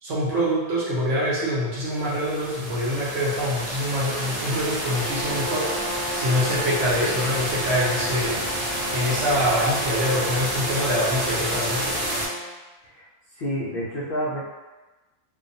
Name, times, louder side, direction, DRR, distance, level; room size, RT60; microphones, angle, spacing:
voice 1, 0.0-8.4 8.9-11.9, equal, 60° right, -7 dB, 0.9 m, -25 dB
sound 1, 1.9-12.3, right 1 dB, 45° right, 0.5 m, -29 dB
Brass instrument, 4.8-12.5, right 1 dB, 85° right, 1.2 m, -34 dB
voice 2, 13.3-14.4, equal, 70° left, -8 dB, 0.5 m, -29 dB
2.5 x 2.2 x 2.6 m, 1.2 s
omnidirectional pair, 1.6 m